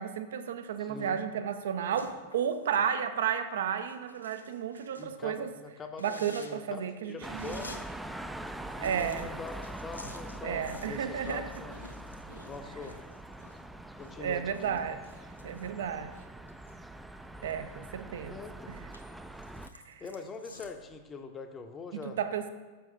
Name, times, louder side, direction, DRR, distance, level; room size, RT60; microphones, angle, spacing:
voice 1, 0.0-5.5 6.0-7.6 8.8-9.3 10.4-11.5 14.2-15.0 15.4-16.1 17.4-18.4 19.7-20.0 21.9-22.4, right 8 dB, 60° right, 10 dB, 0.5 m, -33 dB
voice 2, 0.8-1.2 5.0-7.8 8.7-9.5 9.8-11.8 12.4-13.0 14.0-14.8 18.3-18.7 20.0-22.2, left 4 dB, 20° left, 7 dB, 0.7 m, -43 dB
sound 1, 1.9-2.9 3.2-3.3 3.8-5.1 5.5-5.6 5.9-7.8 8.1-8.2 8.4-13.6 13.9-16.8 17.2-18.2 18.6-20.9, left 2 dB, 80° left, 0.6 m, -50 dB
sound 2, 7.2-19.7, right 1 dB, 5° right, 0.3 m, -43 dB
6.9 x 5.9 x 3.8 m, 1.3 s
figure-of-eight pair, 90°, 0 cm